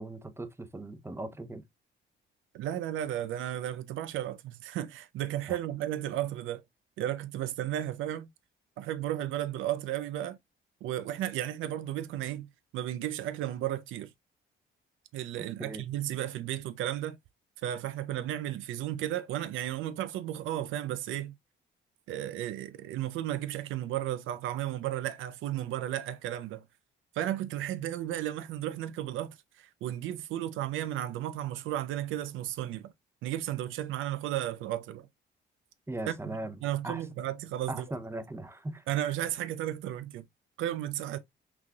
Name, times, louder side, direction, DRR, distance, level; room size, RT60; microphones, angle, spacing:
voice 1, 0.0-1.6 5.5-5.6 15.4-15.8 35.9-36.6 36.8-37.0 37.7-38.8, right 2 dB, 10° right, 0.8 m, -39 dB
voice 2, 2.5-6.6 7.0-8.3 8.8-10.4 10.8-14.1 15.1-17.2 17.6-21.3 22.1-26.6 27.1-32.9 33.2-35.1 36.1-36.2 36.6-37.9 38.9-40.2 40.6-41.2, right 12 dB, 85° right, 0.5 m, -34 dB
6.0 x 3.2 x 2.2 m
cardioid pair, 90°, 20 cm